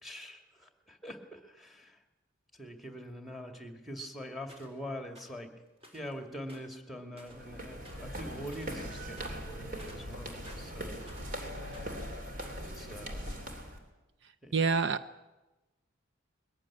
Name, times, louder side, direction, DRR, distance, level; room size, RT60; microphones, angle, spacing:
voice 1, 0.0-2.0 2.5-5.5 5.9-11.1 12.6-13.5 14.4-14.5, equal, ahead, 5 dB, 2.3 m, -44 dB
sound 1, 4.5-4.8 5.1-5.4 5.8-6.1 6.4-7.5 7.8-8.2 8.4-8.8 9.1-11.4 11.6-12.7, equal, 30° right, 4.3 m, -54 dB
sound 2, 7.3-13.8, equal, 45° right, 3.4 m, -41 dB
voice 2, 14.5-15.2, right 4 dB, 60° right, 10 dB, 0.6 m, -28 dB
21.5 x 15.0 x 9.8 m, 1.1 s
head